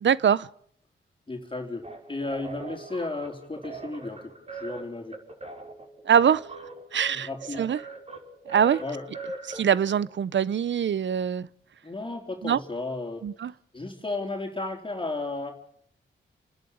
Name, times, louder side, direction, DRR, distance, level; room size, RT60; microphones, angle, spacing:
voice 1, 0.0-0.5 6.1-6.4 6.9-7.3 7.6-7.8 8.5-8.8 9.5-11.5 12.4-12.6 13.2-13.5, right 8 dB, 65° right, 0.7 m, -23 dB
voice 2, 1.3-4.3 4.6-5.2 7.1-7.6 8.8-9.1 11.8-13.3 13.7-15.5, left 2 dB, 25° left, 3.9 m, -34 dB
sound 1, 1.8-10.1, right 3 dB, 30° right, 5.8 m, -41 dB
28.5 x 11.0 x 8.7 m
cardioid pair, 50°, 21 cm